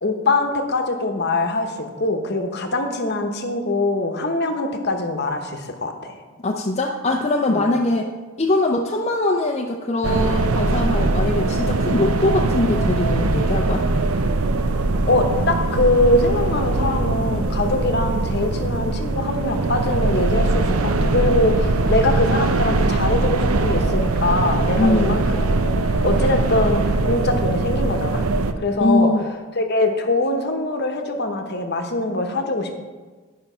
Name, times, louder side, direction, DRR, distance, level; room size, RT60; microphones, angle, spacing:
voice 1, 0.0-6.1 7.5-7.6 15.0-28.2 28.6-29.1 29.6-32.7, left 2 dB, 50° left, 5 dB, 1.0 m, -23 dB
voice 2, 6.4-8.1 8.4-13.8 24.8-25.2 28.8-29.2, left 2 dB, 30° left, 0 dB, 0.6 m, -22 dB
sound 1, 10.0-28.5, right 2 dB, 90° right, 0.7 m, -21 dB
11.5 x 5.5 x 5.5 m, 1.4 s
head